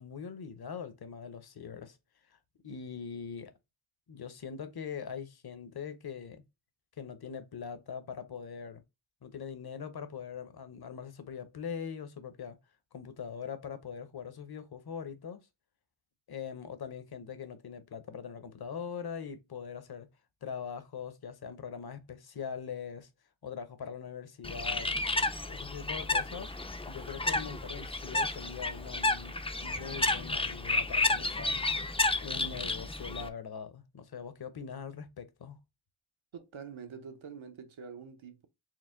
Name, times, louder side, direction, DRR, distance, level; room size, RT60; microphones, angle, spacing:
voice 1, 0.0-2.0 2.3-2.4 2.6-3.5 4.1-6.4 7.0-8.8 9.2-12.6 12.9-15.4 16.3-20.1 20.4-23.1 23.4-24.9 25.5-26.5 26.9-31.6 32.1-35.6, left 6 dB, 50° left, 0.8 m, -42 dB
Bird, 24.4-33.3, left 2 dB, 15° left, 0.4 m, -31 dB
voice 2, 36.3-38.5, right 6 dB, 75° right, 0.9 m, -46 dB
4.7 x 2.1 x 3.6 m
wide cardioid pair, 50°, 48 cm